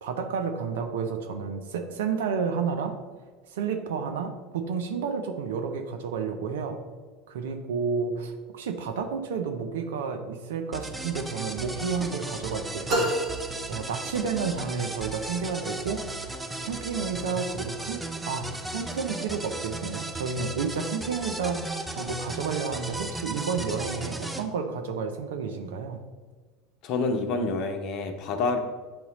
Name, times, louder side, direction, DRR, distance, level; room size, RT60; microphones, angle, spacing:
voice 1, 0.0-3.0 3.5-6.8 7.3-13.2 13.7-16.0 16.6-26.0, right 5 dB, 80° right, 6 dB, 0.6 m, -31 dB
sound 1, 10.7-24.4, right 2 dB, 10° right, 0.6 m, -36 dB
sound 2, 12.9-14.6, equal, 55° right, 1.6 m, -30 dB
voice 2, 26.8-28.6, left 3 dB, 55° left, 5 dB, 0.8 m, -27 dB
8.7 x 2.9 x 4.0 m, 1.4 s
hypercardioid pair, 85°, 0 cm